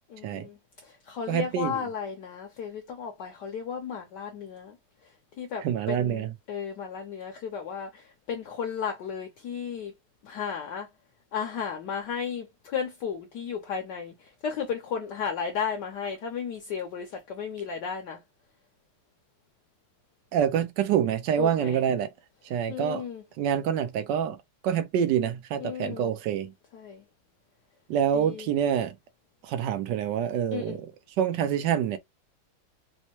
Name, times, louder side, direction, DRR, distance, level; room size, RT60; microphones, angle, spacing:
voice 1, 0.1-4.8 5.4-9.9 10.2-10.9 11.3-18.2 21.4-21.8 22.7-23.2 25.6-26.1 26.7-27.0 28.1-28.5 30.5-30.8, left 7 dB, 65° left, 1.2 m, -34 dB
voice 2, 1.3-1.7 5.6-6.3 20.3-22.1 22.5-23.0 23.4-24.4 24.6-26.5 27.9-29.0 29.4-30.9 31.2-32.0, right 9 dB, 75° right, 1.1 m, -26 dB
4.2 x 2.1 x 3.0 m
omnidirectional pair, 2.3 m